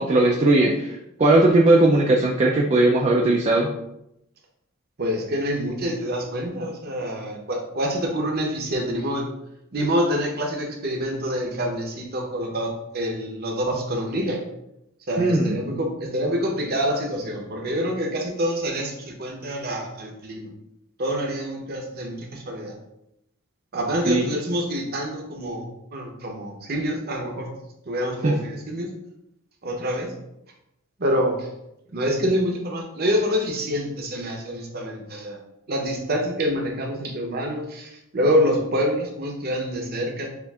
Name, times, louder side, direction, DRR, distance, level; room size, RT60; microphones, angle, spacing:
voice 1, 0.0-3.7 15.2-15.5 24.1-24.2 28.2-28.3, right 2 dB, 30° right, -1 dB, 0.4 m, -18 dB
voice 2, 5.0-9.3 9.7-14.4 15.1-20.5 21.0-22.7 23.7-25.7 25.9-27.5 27.9-28.9 29.6-30.1 31.0-31.5 31.9-35.4 35.7-40.3, equal, 45° right, 1 dB, 0.8 m, -26 dB
6.8 x 2.5 x 2.3 m, 0.84 s
head